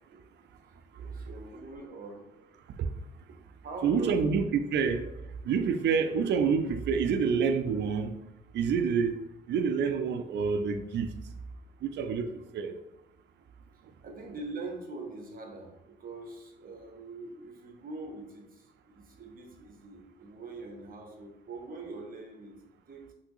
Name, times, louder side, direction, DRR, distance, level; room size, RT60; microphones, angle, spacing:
voice 1, 0.9-2.3 3.6-4.2 14.0-23.1, right 3 dB, 45° right, 3 dB, 0.8 m, -43 dB
voice 2, 3.8-5.1 5.4-8.1 8.5-9.1 9.5-11.1 11.8-12.8, right 6 dB, 60° right, 9 dB, 0.4 m, -27 dB
3.3 x 2.7 x 2.9 m, 0.93 s
cardioid pair, 90°, 20 cm